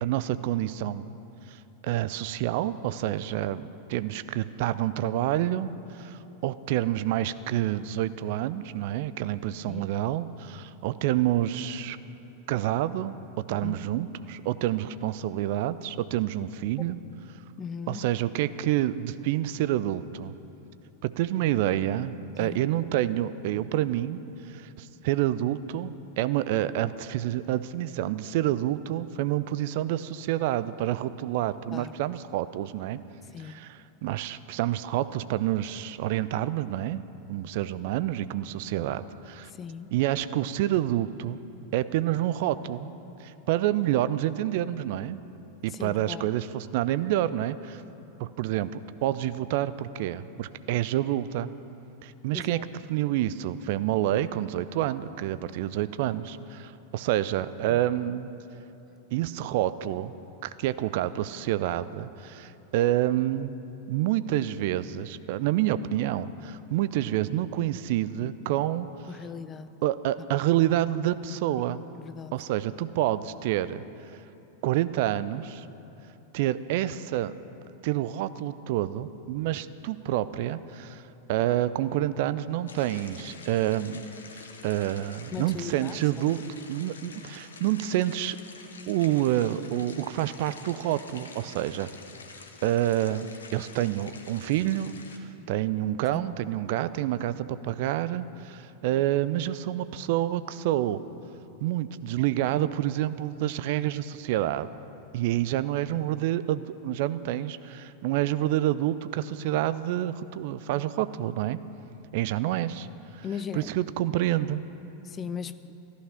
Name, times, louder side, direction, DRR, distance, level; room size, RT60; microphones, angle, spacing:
voice 1, 0.0-1.2 1.5-1.6 1.8-12.0 12.5-17.0 17.9-20.3 21.0-33.0 33.4-37.0 37.3-39.5 39.9-41.4 41.7-42.9 43.2-45.2 45.6-47.8 48.2-51.5 52.0-52.6 52.9-58.3 59.1-60.1 60.4-63.6 63.9-68.9 69.8-71.8 72.3-73.8 74.6-75.7 76.3-77.3 77.8-81.0 81.3-84.0 84.3-86.4 86.7-88.4 88.9-91.9 92.6-94.9 95.5-101.0 101.6-104.7 105.1-111.6 112.1-112.9 113.1-113.2 113.5-114.7, right 13 dB, 50° right, 15 dB, 0.4 m, -28 dB
voice 2, 17.6-18.1 22.4-22.6 31.7-31.9 33.3-33.6 39.5-39.9 45.7-46.2 52.3-52.6 57.7-57.8 69.1-69.7 70.2-70.3 72.0-72.3 85.3-86.0 96.1-96.2 113.2-113.7 115.0-115.6, left 7 dB, 25° left, 13 dB, 0.5 m, -38 dB
sound 1, 82.7-95.2, left 4 dB, 70° left, 1.0 m, -47 dB
14.5 x 11.5 x 5.9 m, 2.9 s
figure-of-eight pair, 90°, 0 cm